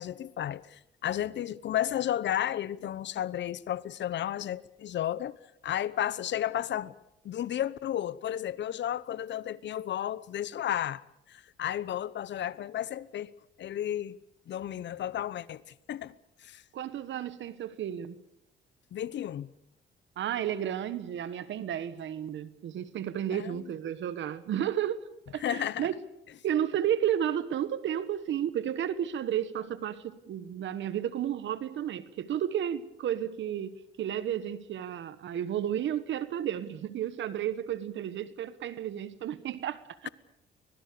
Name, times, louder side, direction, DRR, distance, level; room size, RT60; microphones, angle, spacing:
voice 1, 0.0-5.4 5.6-6.9 7.2-11.0 11.3-13.3 13.6-14.2 14.5-15.6 15.9-16.1 16.4-16.6 18.9-19.5 23.3-23.6 25.4-25.9, left 11 dB, 65° left, 0.9 m, -33 dB
voice 2, 16.7-18.2 20.2-25.0 25.3-25.9 26.4-40.1, right 10 dB, 70° right, 1.4 m, -32 dB
25.0 x 21.0 x 6.8 m
cardioid pair, 90°, 20 cm